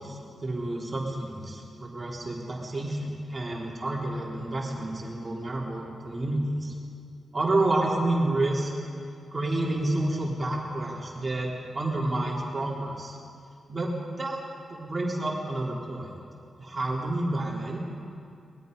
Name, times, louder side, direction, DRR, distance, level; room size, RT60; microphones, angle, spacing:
voice 1, 0.0-6.7 7.3-8.9 9.3-13.2 13.7-14.4 14.7-16.1 16.6-17.8, right 2 dB, 30° right, -3 dB, 3.7 m, -29 dB
23.0 x 21.0 x 5.4 m, 2.4 s
cardioid pair, 95°, 0 cm